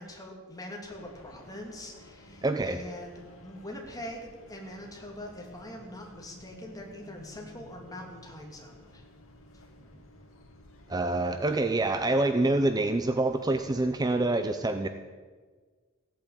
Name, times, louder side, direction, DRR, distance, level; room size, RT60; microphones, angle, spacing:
voice 1, 0.0-9.0, left 1 dB, 20° left, 0 dB, 2.9 m, -43 dB
sound 1, 0.9-14.3, left 1 dB, 90° left, 2.0 m, -54 dB
voice 2, 2.4-2.8 10.9-14.9, right 2 dB, 20° right, 8 dB, 0.6 m, -26 dB
16.0 x 8.8 x 9.0 m, 1.5 s
head